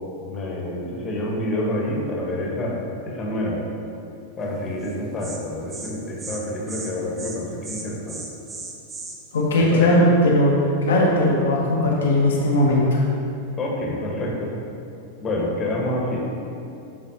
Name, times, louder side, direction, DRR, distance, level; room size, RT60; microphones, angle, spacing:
voice 1, 0.2-2.8 3.0-3.6 4.4-8.2 9.6-10.1 13.6-14.6 15.2-16.3, left 1 dB, 25° left, -2 dB, 1.1 m, -27 dB
Insect, 4.8-4.9 5.2-5.4 5.7-5.9 6.2-6.4 6.7-6.9 7.2-7.4 7.6-9.2, right 3 dB, 25° right, 0.7 m, -35 dB
voice 2, 9.3-13.0, left 1 dB, 65° left, -4 dB, 0.8 m, -18 dB
9.9 x 4.0 x 2.7 m, 2.7 s
figure-of-eight pair, 90°, 0 cm